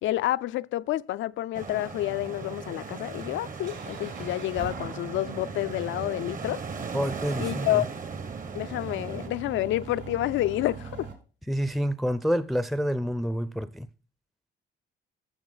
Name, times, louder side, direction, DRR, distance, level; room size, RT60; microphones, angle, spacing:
voice 1, 0.0-6.6 7.4-7.9 8.5-11.1, left 14 dB, 80° left, 0.4 m, -29 dB
sound 1, 1.5-9.3, right 5 dB, 40° right, 1.1 m, -38 dB
sound 2, 2.0-11.1, right 5 dB, 65° right, 4.5 m, -42 dB
voice 2, 6.9-7.8 11.5-13.9, equal, ahead, 0.5 m, -28 dB
14.0 x 7.0 x 3.9 m
cardioid pair, 90°, 20 cm